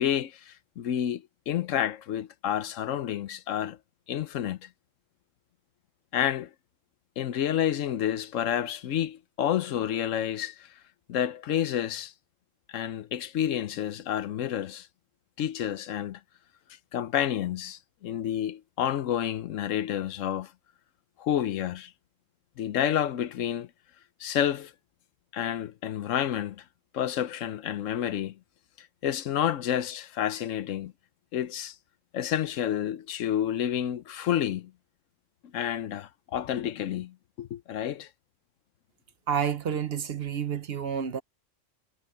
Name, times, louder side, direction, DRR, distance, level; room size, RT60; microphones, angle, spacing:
voice 1, 0.0-3.8 4.1-4.7 6.1-6.5 7.2-10.7 11.1-12.1 12.7-14.9 15.4-16.2 16.9-20.5 21.2-21.9 22.6-23.7 24.2-24.7 25.3-26.6 26.9-28.4 28.8-30.9 31.3-31.7 32.1-34.7 35.5-38.1, left 10 dB, 75° left, 1.1 m, -29 dB
voice 2, 39.3-41.2, right 7 dB, 55° right, 1.0 m, -29 dB
omnidirectional pair, 1.3 m